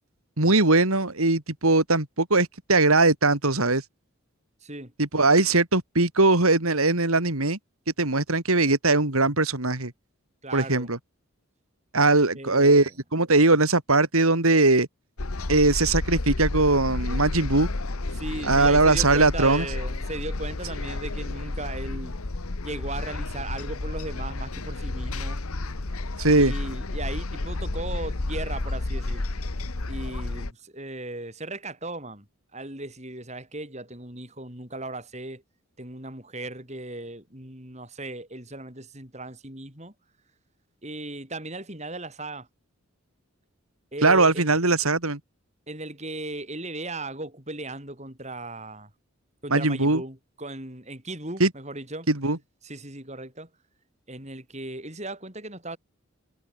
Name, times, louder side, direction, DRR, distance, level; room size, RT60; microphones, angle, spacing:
voice 1, 0.4-3.8 5.0-7.6 8.0-9.9 10.5-11.0 11.9-14.9 15.5-17.7 18.4-19.7 26.2-26.5 44.0-45.2 49.5-50.0 51.4-51.5 52.1-52.4, right 2 dB, 85° right, 3.4 m, -20 dB
voice 2, 4.6-4.9 10.4-10.9 12.3-12.9 18.1-22.2 22.6-25.4 26.3-29.3 29.9-32.3 32.5-35.4 35.8-39.9 40.8-42.5 43.9-44.5 45.7-48.9 49.4-52.1 52.6-53.5 54.1-55.8, right 2 dB, 30° right, 7.3 m, -37 dB
sound 1, 15.2-30.5, left 2 dB, 85° left, 1.4 m, -31 dB
head